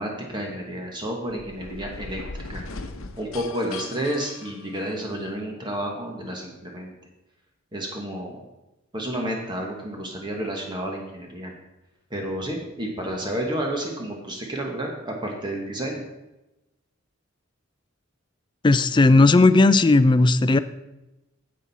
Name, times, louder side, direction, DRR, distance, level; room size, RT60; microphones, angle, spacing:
voice 1, 0.0-2.2 2.5-2.6 3.2-6.9 7.7-8.5 8.9-11.5 12.1-16.0, right 1 dB, 20° right, 0 dB, 1.3 m, -30 dB
sound 1, 1.2-5.3, left 3 dB, 75° left, 0.8 m, -39 dB
voice 2, 18.6-20.6, left 2 dB, 20° left, 13 dB, 0.4 m, -16 dB
9.9 x 7.5 x 4.1 m, 0.98 s
head